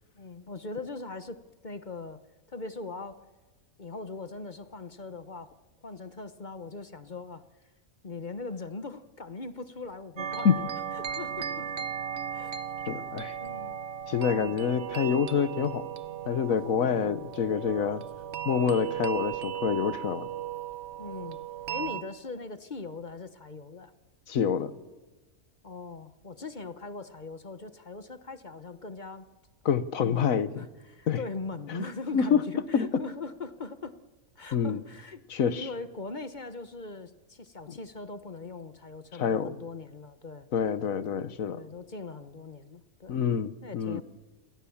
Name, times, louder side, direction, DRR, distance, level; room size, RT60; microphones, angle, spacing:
voice 1, 0.1-2.2 2.5-3.2 3.8-5.5 5.8-7.4 8.0-11.7 12.3-13.0 13.4-13.8 14.3-14.6 21.0-21.4 21.7-23.9 25.6-29.3 30.0-34.0 34.4-35.2 35.6-40.5 41.5-43.2 43.6-44.0, left 3 dB, 35° left, 1.1 m, -41 dB
sound 1, 10.2-22.0, right 9 dB, 50° right, 1.2 m, -36 dB
voice 2, 12.9-13.3 14.1-15.8 16.3-18.0 18.4-20.3 24.3-24.7 29.6-30.6 31.1-31.2 32.1-32.4 32.7-33.0 34.5-34.8 35.3-35.7 39.2-39.5 40.5-41.6 43.1-44.0, left 7 dB, 65° left, 1.4 m, -27 dB
28.5 x 23.0 x 7.2 m
omnidirectional pair, 1.6 m